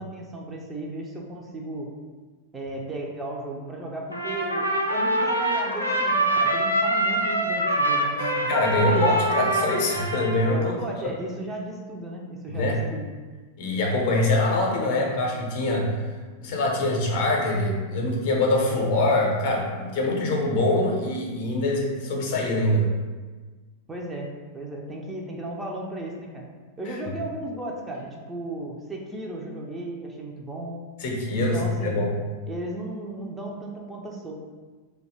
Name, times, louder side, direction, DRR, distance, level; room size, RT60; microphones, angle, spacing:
voice 1, 0.0-1.9 2.5-9.1 10.4-13.0 23.9-26.5 26.8-30.8 31.4-32.0 32.5-34.3, right 1 dB, 15° right, -1 dB, 0.4 m, -35 dB
Trumpet, 4.1-10.7, right 1 dB, 85° left, 0.4 m, -25 dB
voice 2, 8.5-10.7 12.5-12.8 13.6-15.9 16.4-22.9 31.0-32.1, left 2 dB, 50° left, 0 dB, 0.6 m, -24 dB
2.7 x 2.2 x 3.9 m, 1.3 s
figure-of-eight pair, 90°, 0 cm